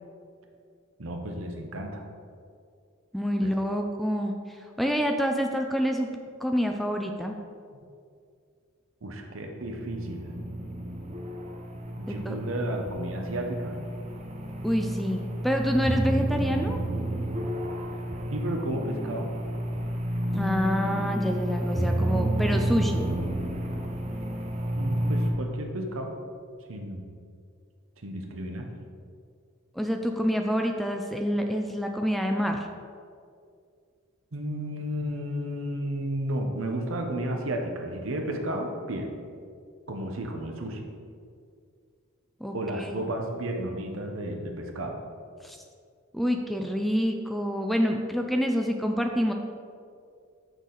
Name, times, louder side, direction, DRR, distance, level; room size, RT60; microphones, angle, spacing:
voice 1, 1.0-2.0 3.4-3.5 7.7-7.8 9.0-10.3 12.0-13.8 18.3-19.3 24.8-26.1 26.7-27.0 28.0-28.7 34.3-39.1 39.9-40.9 42.5-45.0, right 1 dB, 70° right, 3 dB, 0.9 m, -32 dB
voice 2, 3.1-7.3 12.1-12.4 14.6-16.8 20.3-23.1 29.7-32.7 42.4-43.0 45.4-45.6 46.1-49.3, equal, ahead, 3 dB, 0.3 m, -27 dB
sound 1, 9.6-25.3, right 1 dB, 30° right, 0.7 m, -30 dB
6.7 x 6.3 x 3.9 m, 2.3 s
head